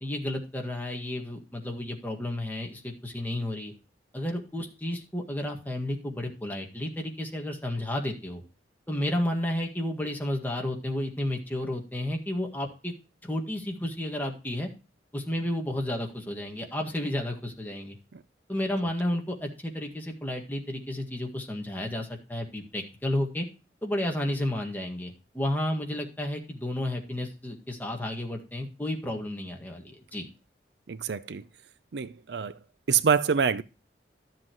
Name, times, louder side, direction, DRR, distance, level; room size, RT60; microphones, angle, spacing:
voice 1, 0.0-3.7 4.1-8.4 8.9-12.9 13.2-14.7 15.1-18.0 18.5-23.5 23.8-30.3, left 1 dB, 10° left, 1.8 m, -32 dB
voice 2, 30.9-31.4 31.9-32.6 32.9-33.6, right 6 dB, 70° right, 0.5 m, -26 dB
12.5 x 7.6 x 3.0 m
head